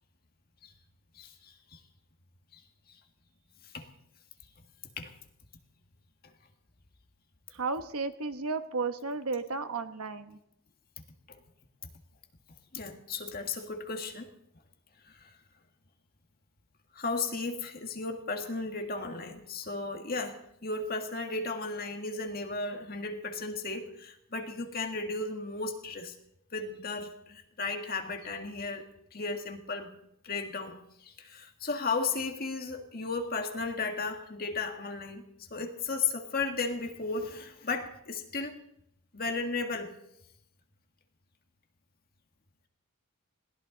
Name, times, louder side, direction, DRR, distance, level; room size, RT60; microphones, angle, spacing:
voice 1, 1.2-1.8 2.5-2.6 3.7-3.8 5.0-5.1 11.3-11.4 12.7-14.3 15.0-15.3 16.9-26.1 26.5-28.8 29.1-29.9 30.2-38.6 39.1-39.9, left 3 dB, 45° left, 4 dB, 1.8 m, -35 dB
voice 2, 7.5-10.4, right 4 dB, 80° right, 9 dB, 1.2 m, -33 dB
21.0 x 16.5 x 4.0 m, 0.79 s
head